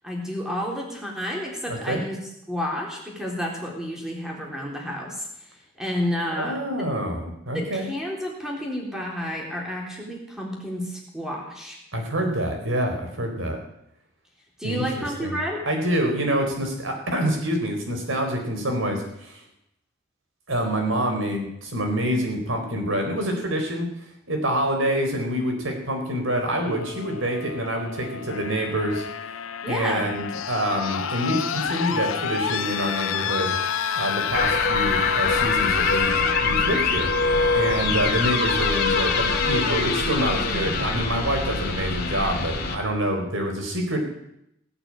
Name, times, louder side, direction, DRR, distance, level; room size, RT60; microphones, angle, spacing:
voice 1, 0.0-2.2 2.5-5.3 5.8-6.6 7.5-11.8 14.6-15.6 29.6-30.1, equal, 5° right, -1 dB, 3.7 m, -30 dB
voice 2, 1.7-2.0 6.3-7.9 11.9-13.6 14.6-15.4 15.7-19.4 20.5-23.9 24.3-29.1 29.7-33.6 33.9-37.1 37.5-44.0, right 1 dB, 70° right, 3 dB, 4.4 m, -26 dB
sound 1, 26.6-40.5 41.8-41.9, left 7 dB, 85° left, 0.8 m, -30 dB
sound 2, 34.3-42.8, left 4 dB, 50° left, 2.7 m, -24 dB
17.5 x 8.9 x 8.9 m, 0.80 s
head